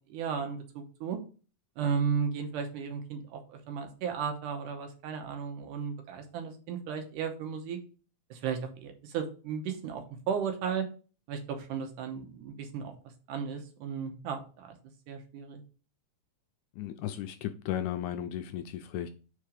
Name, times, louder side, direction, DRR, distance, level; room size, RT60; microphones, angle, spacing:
voice 1, 0.1-1.2 1.8-7.8 8.3-10.9 11.3-12.9 13.3-14.8 15.1-15.6, right 6 dB, 85° right, 2.5 m, -34 dB
voice 2, 16.7-19.1, left 11 dB, 80° left, 1.8 m, -35 dB
4.9 x 4.4 x 5.0 m
omnidirectional pair, 3.7 m